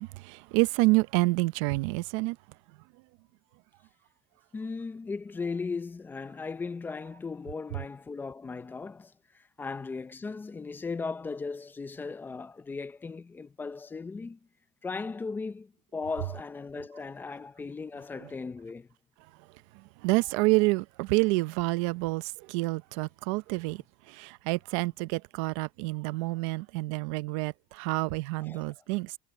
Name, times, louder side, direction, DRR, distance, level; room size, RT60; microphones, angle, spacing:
voice 1, 0.0-2.4 20.0-29.2, right 24 dB, 80° right, 0.6 m, -28 dB
voice 2, 4.5-14.4 14.8-18.9 28.4-28.7, left 4 dB, 10° left, 0.7 m, -37 dB
cardioid pair, 170°, 16 cm